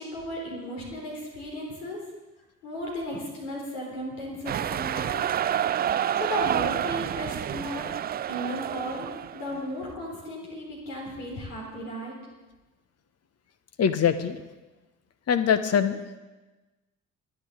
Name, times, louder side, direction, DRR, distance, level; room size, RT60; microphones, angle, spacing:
voice 1, 0.0-2.0 2.6-5.3 6.2-7.9 8.3-12.2, left 1 dB, 75° left, -2 dB, 3.9 m, -35 dB
sound 1, 4.5-9.6, right 10 dB, 25° right, 0.4 m, -28 dB
voice 2, 13.8-14.4 15.3-16.2, left 7 dB, 40° left, 11 dB, 1.3 m, -23 dB
27.5 x 10.5 x 4.0 m, 1.1 s
figure-of-eight pair, 45°, 38 cm